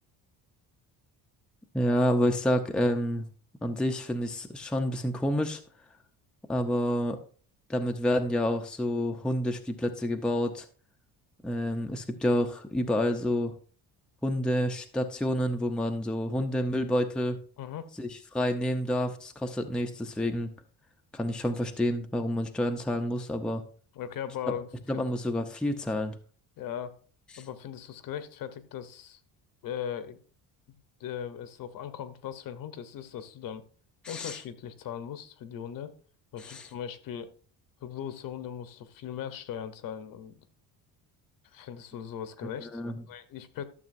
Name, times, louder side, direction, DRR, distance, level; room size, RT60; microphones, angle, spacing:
voice 1, 1.7-3.3 3.6-5.6 6.5-7.2 7.7-10.7 11.4-13.5 14.2-17.4 18.0-20.5 21.1-23.6 24.9-26.1 27.3-27.4 34.0-34.4 36.4-36.7 42.7-43.0, left 1 dB, ahead, 4 dB, 0.5 m, -28 dB
voice 2, 17.6-17.9 23.9-25.0 26.6-26.9 27.4-29.2 29.6-30.2 31.0-33.6 34.1-35.9 36.3-37.3 37.8-40.4 41.5-42.8 43.1-43.6, left 9 dB, 60° left, 11 dB, 0.9 m, -39 dB
12.5 x 6.7 x 2.6 m, 0.42 s
cardioid pair, 140°, 39 cm